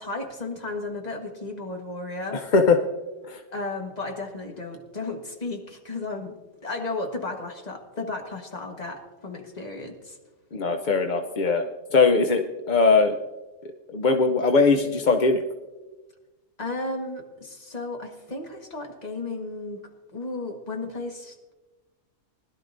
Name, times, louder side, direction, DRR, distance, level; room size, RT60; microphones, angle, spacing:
voice 1, 0.0-2.5 3.5-6.4 6.6-10.2 16.6-19.8 20.1-21.5, left 2 dB, 30° left, 3 dB, 1.5 m, -34 dB
voice 2, 2.3-2.8 3.3-3.4 10.5-11.6 11.9-13.1 13.6-15.4, left 4 dB, 50° left, 6 dB, 0.6 m, -21 dB
20.5 x 12.0 x 2.6 m, 1.2 s
omnidirectional pair, 1.4 m